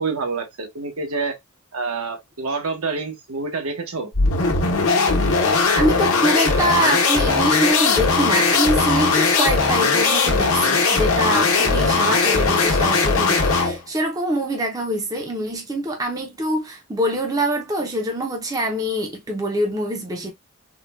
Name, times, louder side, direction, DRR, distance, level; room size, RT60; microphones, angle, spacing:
voice 1, 0.0-1.4 1.7-4.1, right 4 dB, 75° right, 0.9 m, -27 dB
sound 1, 4.1-13.8, left 4 dB, 70° left, 0.9 m, -19 dB
voice 2, 5.7-20.3, right 1 dB, 15° right, 0.5 m, -24 dB
3.6 x 2.2 x 2.3 m
head